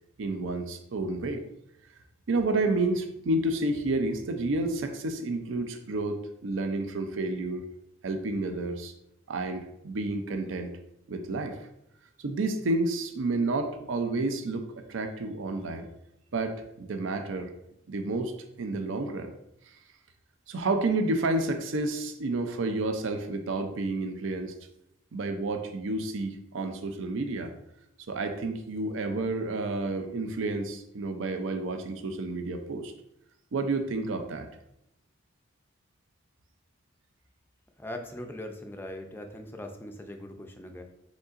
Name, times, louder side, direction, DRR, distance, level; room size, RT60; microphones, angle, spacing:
voice 1, 0.2-1.4 2.3-7.6 8.0-8.9 9.3-10.7 11.1-11.6 12.2-14.6 14.9-15.9 16.3-17.5 17.9-19.3 20.5-24.5 25.1-27.5 28.1-32.9 33.5-34.5, right 2 dB, 75° right, 6 dB, 0.5 m, -30 dB
voice 2, 37.8-40.8, left 1 dB, 10° left, 4 dB, 0.4 m, -40 dB
5.1 x 3.8 x 2.5 m, 0.81 s
head